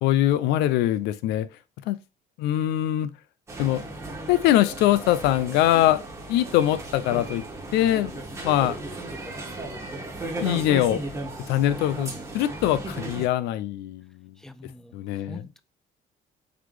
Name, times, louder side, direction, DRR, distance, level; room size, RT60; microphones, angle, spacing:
voice 1, 0.0-1.5 1.9-2.0 2.4-3.1 3.6-3.8 4.3-6.0 6.3-7.4 7.7-8.1 8.4-8.8 10.4-11.0 11.5-14.3 14.9-15.4, left 13 dB, 90° left, 0.4 m, -22 dB
sound 1, 3.5-13.3, right 2 dB, 15° right, 1.4 m, -35 dB
voice 2, 14.4-15.6, left 1 dB, 5° left, 0.4 m, -45 dB
4.0 x 3.0 x 3.1 m
cardioid pair, 110°, 17 cm